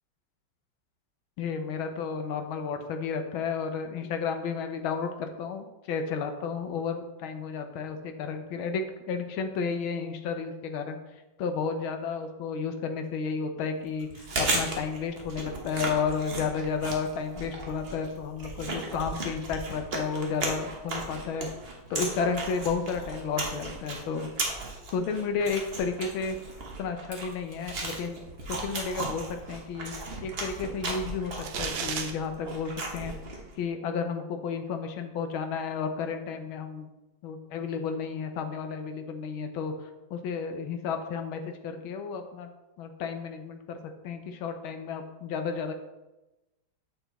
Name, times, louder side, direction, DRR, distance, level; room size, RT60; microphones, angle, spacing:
voice 1, 1.4-11.0 11.4-21.5 21.9-24.3 24.9-26.4 26.8-28.2 28.5-29.9 30.2-31.3 31.6-33.1 33.6-36.9 37.2-39.7 40.1-42.5 42.8-43.8 44.0-45.7, left 5 dB, 85° left, 6 dB, 1.6 m, -32 dB
Chewing mastication, 14.0-33.5, right 2 dB, 35° right, 1.2 m, -36 dB
sound 1, 31.4-32.1, right 7 dB, 75° right, 1.6 m, -33 dB
8.2 x 6.1 x 4.0 m, 1.0 s
omnidirectional pair, 2.2 m